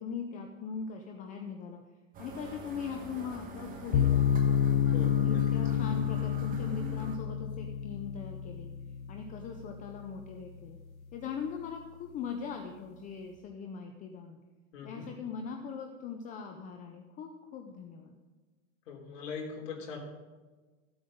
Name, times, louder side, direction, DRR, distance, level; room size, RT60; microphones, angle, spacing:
voice 1, 0.0-1.8 2.2-4.6 5.1-8.7 9.1-10.8 11.1-14.4 14.8-18.1, left 6 dB, 20° left, 4 dB, 0.6 m, -40 dB
sound 1, 2.1-7.2, right 3 dB, 20° right, 1.4 m, -45 dB
sound 2, 3.9-11.0, left 9 dB, 85° left, 0.9 m, -29 dB
voice 2, 4.9-5.4 14.7-15.1 18.9-20.0, left 5 dB, 65° left, 0 dB, 3.5 m, -41 dB
14.5 x 7.9 x 5.1 m, 1.3 s
supercardioid pair, 145°, 41 cm